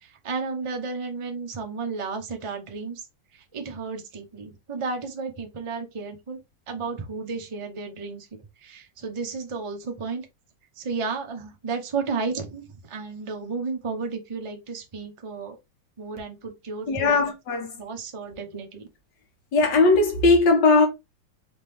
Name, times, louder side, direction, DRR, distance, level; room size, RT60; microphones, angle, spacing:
voice 1, 0.0-3.1 3.3-6.4 6.7-8.3 8.6-10.3 10.8-15.6 16.0-17.2 17.8-18.9, right 4 dB, 40° right, 0.4 m, -33 dB
voice 2, 16.9-17.8 19.5-20.9, left 3 dB, 65° left, 1.6 m, -19 dB
3.6 x 3.5 x 3.4 m
omnidirectional pair, 2.0 m